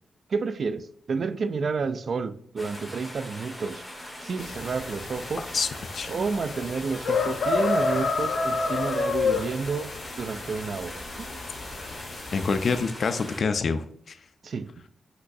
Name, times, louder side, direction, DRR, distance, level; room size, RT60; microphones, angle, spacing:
voice 1, 0.3-3.8 4.2-5.5 6.1-9.9 10.2-11.4 14.4-14.7, right 4 dB, 55° right, 0.4 m, -30 dB
sound 1, 2.6-13.4, equal, 5° left, 1.6 m, -41 dB
sound 2, 4.4-12.8, left 4 dB, 85° left, 0.9 m, -30 dB
voice 2, 12.3-14.2, left 5 dB, 60° left, 0.3 m, -26 dB
5.9 x 3.0 x 2.6 m
cardioid pair, 105°, 0 cm